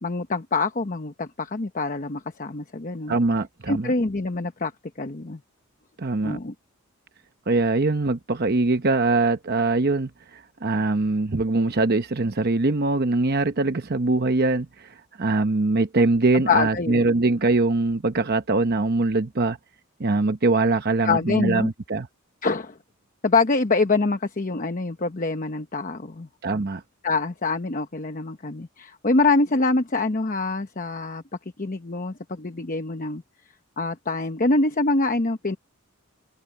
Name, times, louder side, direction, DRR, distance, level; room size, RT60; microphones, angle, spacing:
voice 1, 0.0-3.2 3.7-4.7 5.0-5.4 6.2-6.5 16.3-17.1 21.0-21.7 22.4-22.8 23.2-26.3 27.0-31.2 31.6-33.2 33.8-35.6, left 3 dB, 35° left, 0.9 m, -25 dB
voice 2, 3.1-3.9 6.0-6.4 7.5-19.6 20.0-22.1 26.4-26.8, right 3 dB, 45° right, 0.9 m, -22 dB
head